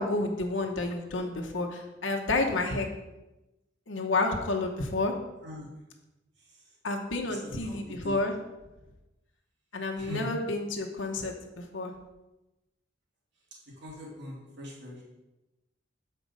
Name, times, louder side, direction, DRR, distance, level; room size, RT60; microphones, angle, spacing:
voice 1, 0.0-2.9 3.9-5.1 6.8-8.3 9.7-11.9, left 2 dB, 75° left, 2 dB, 1.0 m, -30 dB
voice 2, 7.2-7.8 8.0-8.2 10.0-10.3 13.8-15.0, left 1 dB, 65° right, -4 dB, 2.3 m, -41 dB
7.7 x 4.5 x 5.2 m, 1.0 s
head